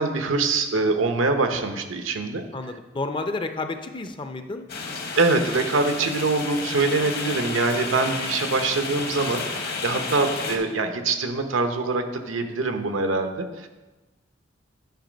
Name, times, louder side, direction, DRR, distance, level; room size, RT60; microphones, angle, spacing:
voice 1, 0.0-2.4 5.2-13.7, right 3 dB, 85° right, 7 dB, 0.8 m, -24 dB
voice 2, 2.5-4.7 10.2-10.6, left 3 dB, 25° left, 8 dB, 0.4 m, -31 dB
sound 1, 4.7-10.6, left 4 dB, 55° left, 1.0 m, -31 dB
9.3 x 4.6 x 5.1 m, 1.2 s
head